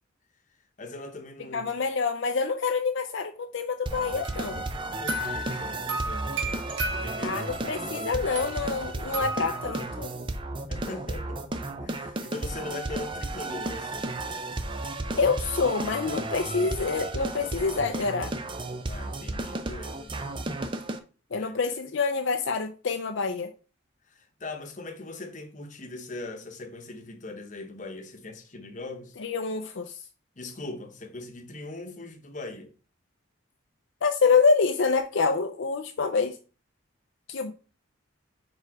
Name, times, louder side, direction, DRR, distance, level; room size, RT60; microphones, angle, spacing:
voice 1, 0.8-1.8 5.0-6.6 6.9-8.4 10.7-11.5 11.8-14.2 18.8-20.1 21.3-21.5 24.1-29.2 30.4-32.7, left 2 dB, 35° left, 1.0 m, -40 dB
voice 2, 1.5-4.6 7.2-10.1 15.2-18.3 21.3-23.5 29.2-30.0 34.0-36.4 37.3-37.5, left 4 dB, 65° left, 0.5 m, -26 dB
sound 1, 3.9-21.0, right 2 dB, 25° right, 0.5 m, -33 dB
sound 2, 4.2-7.8 8.4-9.8, right 1 dB, 70° right, 2.4 m, -35 dB
4.9 x 4.7 x 4.7 m
head